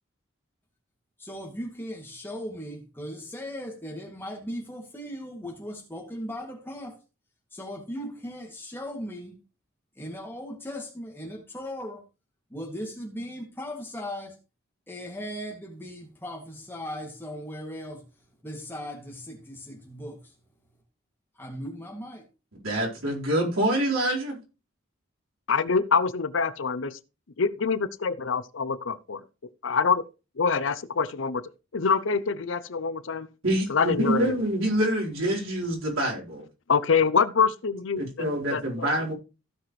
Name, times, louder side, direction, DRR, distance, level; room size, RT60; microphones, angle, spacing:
voice 1, 1.2-7.0 7.5-9.3 10.0-12.0 12.5-14.4 14.9-18.1 18.4-20.3 21.4-22.2, equal, 10° left, 2.3 m, -38 dB
voice 2, 22.6-24.4 33.4-36.4 38.0-39.1, right 1 dB, 90° right, 4.5 m, -26 dB
voice 3, 25.5-27.0 27.4-29.2 29.6-30.0 30.4-31.4 31.7-33.3 33.7-34.3 36.7-38.9, left 5 dB, 70° left, 0.7 m, -25 dB
15.5 x 6.0 x 3.2 m
head